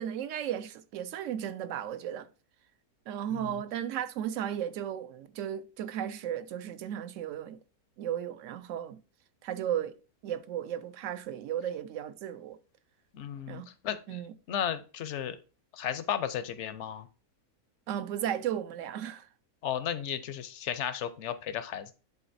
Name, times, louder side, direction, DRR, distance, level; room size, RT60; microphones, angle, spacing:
voice 1, 0.0-2.3 3.1-7.6 8.0-9.0 9.4-10.0 10.2-12.6 13.5-13.7 14.1-14.3 17.9-19.3, right 10 dB, 65° right, 0.8 m, -35 dB
voice 2, 3.3-3.6 13.1-14.2 14.5-15.4 15.7-17.1 19.6-21.9, left 9 dB, 60° left, 0.8 m, -34 dB
11.0 x 3.9 x 2.6 m
omnidirectional pair, 1.6 m